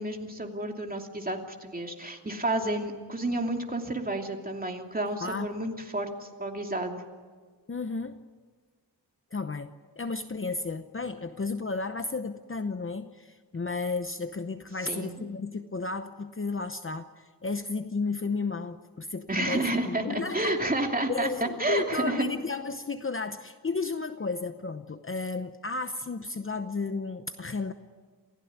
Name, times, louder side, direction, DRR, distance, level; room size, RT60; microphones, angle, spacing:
voice 1, 0.0-7.0 14.8-15.2 19.3-22.3, right 2 dB, 20° right, 2 dB, 2.8 m, -30 dB
voice 2, 7.7-8.2 9.3-20.6 21.1-27.7, left 3 dB, 30° left, 9 dB, 0.9 m, -33 dB
28.5 x 16.0 x 9.5 m, 1.5 s
wide cardioid pair, 115°, 40 cm